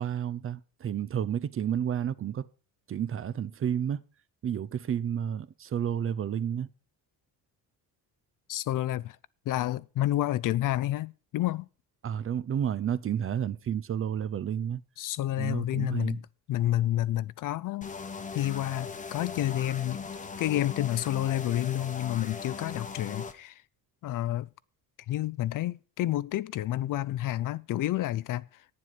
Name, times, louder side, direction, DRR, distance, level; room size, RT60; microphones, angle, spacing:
voice 1, 0.0-2.5 2.9-4.0 4.4-6.7 12.0-14.8 15.4-16.2, right 9 dB, 35° right, 0.5 m, -31 dB
voice 2, 8.5-9.2 9.5-11.7 15.0-16.2 16.5-17.9 18.3-20.0 20.4-23.6 24.0-24.5 25.1-28.5, left 14 dB, 60° left, 0.5 m, -29 dB
sound 1, 17.8-23.3, left 5 dB, 20° left, 0.9 m, -39 dB
9.6 x 7.6 x 5.9 m
cardioid pair, 120°, 37 cm